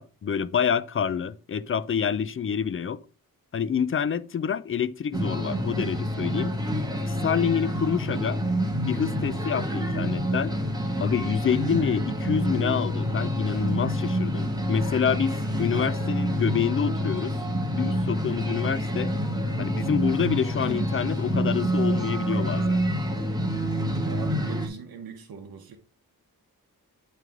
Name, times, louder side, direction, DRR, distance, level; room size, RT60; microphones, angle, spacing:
voice 1, 0.0-3.0 3.5-6.5 7.1-8.4 8.8-10.5 11.0-17.4 17.7-19.1 19.6-22.8, left 7 dB, 35° left, 0.4 m, -27 dB
sound 1, 5.1-24.7, equal, 10° right, 1.4 m, -27 dB
voice 2, 24.0-25.8, right 5 dB, 85° right, 0.9 m, -40 dB
9.1 x 3.3 x 3.6 m
cardioid pair, 80°, 35 cm